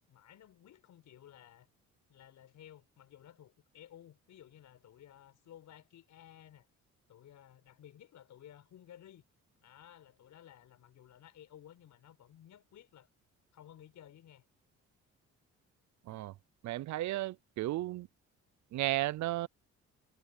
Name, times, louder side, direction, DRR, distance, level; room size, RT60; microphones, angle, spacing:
voice 1, 0.1-1.7 2.1-6.7 7.1-9.2 9.6-13.1 13.5-14.5, left 11 dB, 70° left, 5.7 m, -56 dB
voice 2, 16.6-18.1 18.7-19.5, right 16 dB, 70° right, 0.6 m, -34 dB
cardioid pair, 90°, 30 cm